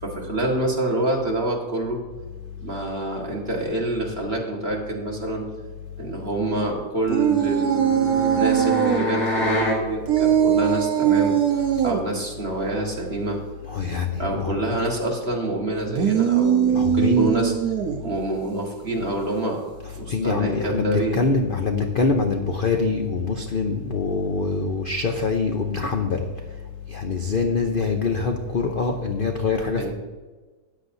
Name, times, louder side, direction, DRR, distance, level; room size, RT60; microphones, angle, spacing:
voice 1, 0.0-2.0 2.6-5.5 6.0-13.4 14.2-17.5 18.0-19.6 20.0-21.2 29.8-29.9, right 2 dB, 35° right, -2 dB, 2.0 m, -27 dB
sound 1, 7.1-9.0 10.1-12.0 15.8-18.1, right 9 dB, 65° right, 1.3 m, -21 dB
sound 2, 7.2-9.8, left 1 dB, 85° left, 4.1 m, -26 dB
voice 2, 13.7-14.6 16.7-17.3 20.1-26.3 26.9-29.9, left 4 dB, 50° left, 3 dB, 0.7 m, -24 dB
13.5 x 9.6 x 2.7 m, 1.3 s
omnidirectional pair, 1.8 m